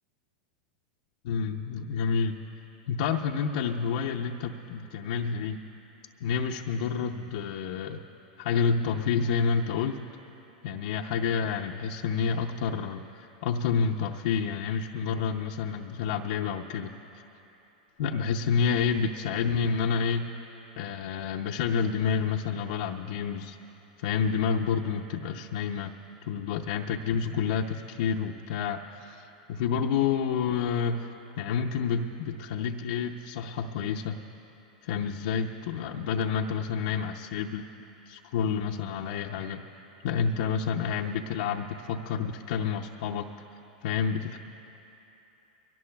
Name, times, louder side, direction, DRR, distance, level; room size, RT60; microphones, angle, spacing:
voice 1, 1.2-2.4 2.9-5.6 6.2-8.0 8.4-10.0 10.6-16.9 18.0-20.3 20.8-23.6 24.0-25.9 26.3-34.2 34.8-37.6 38.1-39.6 40.0-43.3 43.8-44.4, left 6 dB, 65° left, -1 dB, 0.6 m, -29 dB
23.5 x 18.0 x 2.3 m, 3.0 s
hypercardioid pair, 115°, 4 cm